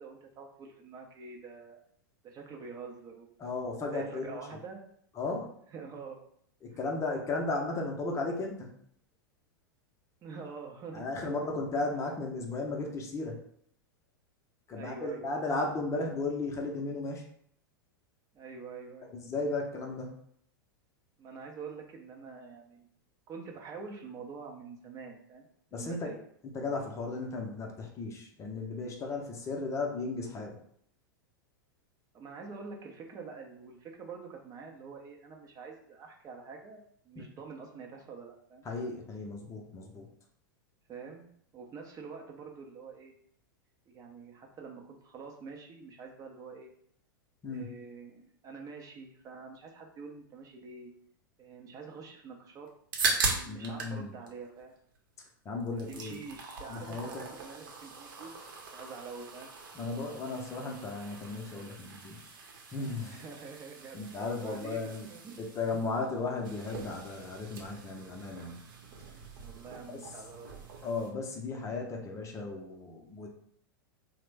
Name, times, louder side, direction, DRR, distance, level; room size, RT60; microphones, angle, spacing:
voice 1, 0.0-1.8 2.2-3.6 3.9-4.8 5.7-6.2 6.7-6.8 10.2-11.3 11.7-11.9 14.7-15.3 18.3-19.1 21.2-22.9 23.3-26.2 32.1-38.7 40.9-43.1 43.9-46.7 47.5-50.9 51.4-52.7 53.2-54.7 55.9-58.4 58.7-59.5 63.0-65.4 69.4-70.5, right 5 dB, 30° right, 1 dB, 0.6 m, -46 dB
voice 2, 3.4-4.4 5.2-5.5 6.6-8.7 10.9-13.4 14.7-17.2 19.1-20.1 25.7-26.1 26.5-30.6 37.2-37.3 38.6-40.1 47.4-47.7 53.4-54.1 55.4-56.2 56.7-57.2 59.7-62.3 62.7-63.2 63.9-65.1 65.4-68.6 69.9-70.1 70.8-73.3, left 3 dB, 25° left, 1 dB, 0.6 m, -35 dB
sound 1, 52.7-54.0 54.3-55.3 55.6-71.1, right 4 dB, 65° right, 0.8 m, -40 dB
3.1 x 2.1 x 3.2 m, 0.66 s
hypercardioid pair, 100°, 12 cm